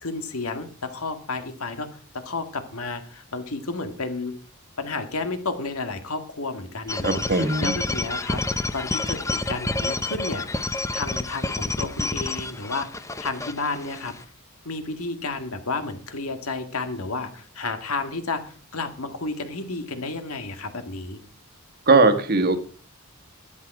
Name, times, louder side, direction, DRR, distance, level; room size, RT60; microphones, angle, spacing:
voice 1, 0.0-4.4 4.8-8.4 8.7-10.5 10.9-14.1 14.7-21.2, left 3 dB, 75° left, 8 dB, 1.9 m, -31 dB
sound 1, 6.9-14.2, left 2 dB, 15° left, 0.7 m, -29 dB
voice 2, 7.0-7.8 21.9-22.6, right 3 dB, 45° right, 9 dB, 1.4 m, -19 dB
13.0 x 10.5 x 4.7 m, 0.42 s
head